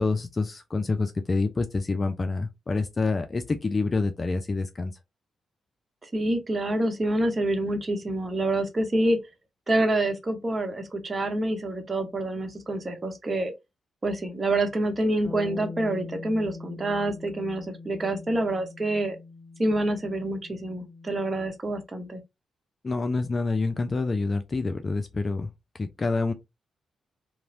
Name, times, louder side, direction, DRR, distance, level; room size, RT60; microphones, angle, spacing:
voice 1, 0.0-4.9 22.8-25.5 25.7-26.3, left 3 dB, 40° left, 0.4 m, -27 dB
voice 2, 6.0-9.2 9.7-13.5 14.0-19.2 19.6-22.2, right 1 dB, 35° right, 0.9 m, -27 dB
Bass guitar, 15.2-21.5, left 3 dB, 5° right, 1.4 m, -42 dB
2.9 x 2.1 x 2.7 m
hypercardioid pair, 40°, 0 cm